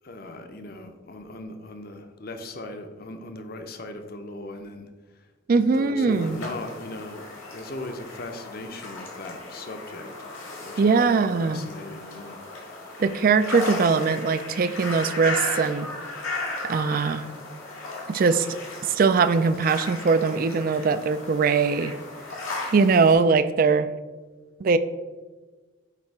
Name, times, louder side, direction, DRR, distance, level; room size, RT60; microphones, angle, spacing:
voice 1, 0.0-5.3 5.7-12.4 12.7-13.0 13.5-13.7, left 2 dB, 45° left, 7 dB, 0.6 m, -39 dB
voice 2, 5.5-6.4 10.8-11.6 13.0-15.9 16.6-17.3 18.1-18.5 18.8-21.9 22.7-23.9 24.6-24.8, right 4 dB, 45° right, 13 dB, 0.3 m, -21 dB
sound 1, 6.1-23.1, left 2 dB, 85° left, 2.0 m, -36 dB
8.3 x 2.9 x 4.6 m, 1.3 s
head